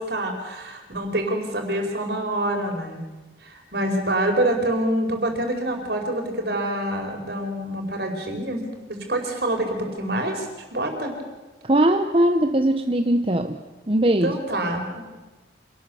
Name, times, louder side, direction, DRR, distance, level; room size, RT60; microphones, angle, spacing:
voice 1, 0.0-3.0 3.4-8.6 8.9-10.5 10.7-11.1 14.2-15.0, right 1 dB, 60° right, 3 dB, 4.7 m, -26 dB
voice 2, 11.6-13.6 13.9-14.3, right 1 dB, 30° right, 6 dB, 0.8 m, -20 dB
26.5 x 19.0 x 7.0 m, 1.2 s
head